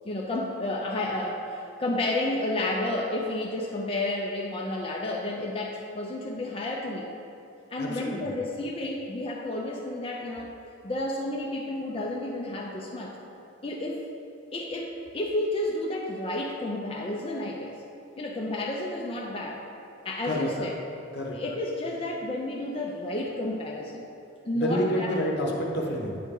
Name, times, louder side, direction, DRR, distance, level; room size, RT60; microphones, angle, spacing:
voice 1, 0.0-7.1 7.7-10.5 10.8-13.2 13.6-14.1 14.5-17.7 18.2-19.6 20.0-20.7 21.3-24.0 24.4-25.2, left 1 dB, 25° left, -1 dB, 0.4 m, -31 dB
voice 2, 7.8-8.3 20.3-20.5 21.1-21.4 24.5-26.2, equal, 50° left, -1 dB, 0.8 m, -28 dB
9.3 x 4.1 x 3.7 m, 2.7 s
head